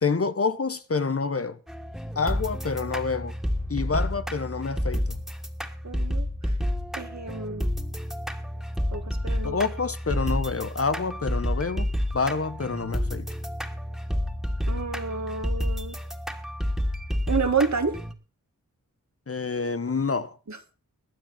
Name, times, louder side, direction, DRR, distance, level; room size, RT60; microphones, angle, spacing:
voice 1, 0.0-1.6 2.1-3.4 3.7-5.2 9.4-11.9 12.1-13.3 19.3-20.4, left 4 dB, 45° left, 1.0 m, -27 dB
sound 1, 1.7-18.1, equal, ahead, 2.6 m, -30 dB
voice 2, 5.8-6.3 7.0-7.7 8.9-9.6 14.7-16.0 17.3-18.0 20.5-20.6, right 5 dB, 55° right, 2.2 m, -29 dB
21.5 x 9.0 x 4.3 m
cardioid pair, 45°, 33 cm